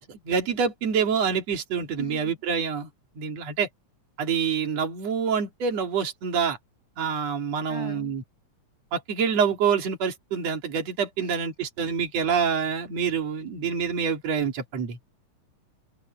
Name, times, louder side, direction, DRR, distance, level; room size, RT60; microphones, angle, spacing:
voice 1, 0.1-2.9 3.2-3.7 4.2-6.6 7.0-8.2 8.9-15.0, right 6 dB, 60° right, 3.9 m, -26 dB
voice 2, 2.0-2.3 7.7-8.2 11.2-11.3, right 3 dB, 10° right, 2.9 m, -38 dB
omnidirectional pair, 3.3 m